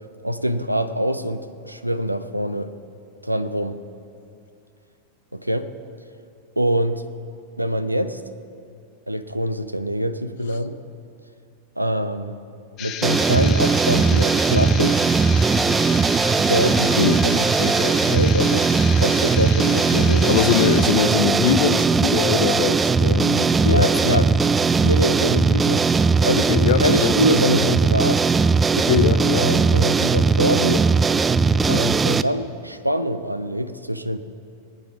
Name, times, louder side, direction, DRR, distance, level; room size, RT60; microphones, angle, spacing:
voice 1, 0.2-2.7 3.2-3.8 5.3-5.7 6.6-7.0 7.6-8.2 9.1-10.8 11.8-12.4 12.8-15.0 16.4-18.7 19.0-20.4 23.7-24.3 24.8-25.9 26.2-28.2 29.3-30.9 31.6-34.2, equal, 90° right, 11 dB, 0.7 m, -24 dB
sound 1, 12.8-20.9, left 10 dB, 35° left, 1.0 m, -33 dB
sound 2, 13.0-32.2, right 4 dB, 15° right, 0.4 m, -19 dB
sound 3, 18.3-30.4, right 3 dB, 35° right, 2.7 m, -47 dB
voice 2, 20.3-24.2 26.5-27.1 28.8-29.5, left 9 dB, 60° left, 13 dB, 0.6 m, -22 dB
20.5 x 9.2 x 5.8 m, 2.5 s
figure-of-eight pair, 90°, 0 cm